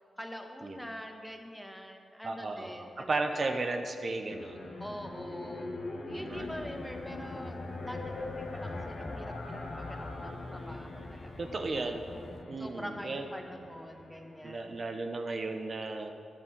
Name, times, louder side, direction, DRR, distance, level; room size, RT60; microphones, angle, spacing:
voice 1, 0.2-3.2 4.8-5.7 6.0-7.6 7.8-11.3 11.9-12.0 12.6-14.8 16.1-16.2, equal, ahead, 3 dB, 1.4 m, -44 dB
voice 2, 2.2-4.8 6.1-6.6 11.4-12.1 12.5-13.3 14.4-16.1, right 3 dB, 55° right, 5 dB, 0.8 m, -35 dB
sound 1, 4.3-14.8, left 2 dB, 65° left, 1.5 m, -43 dB
Bicycle / Mechanisms, 6.3-12.4, left 2 dB, 35° left, 0.4 m, -45 dB
9.9 x 7.4 x 6.0 m, 2.5 s
supercardioid pair, 45°, 0 cm